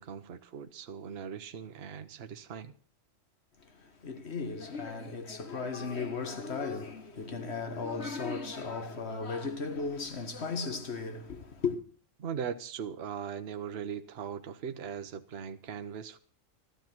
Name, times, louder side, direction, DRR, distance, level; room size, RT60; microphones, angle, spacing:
voice 1, 0.0-2.7 12.2-16.2, right 7 dB, 55° right, 1.1 m, -39 dB
voice 2, 3.6-11.8, left 4 dB, 55° left, 1.8 m, -36 dB
14.0 x 12.5 x 6.0 m
omnidirectional pair, 1.3 m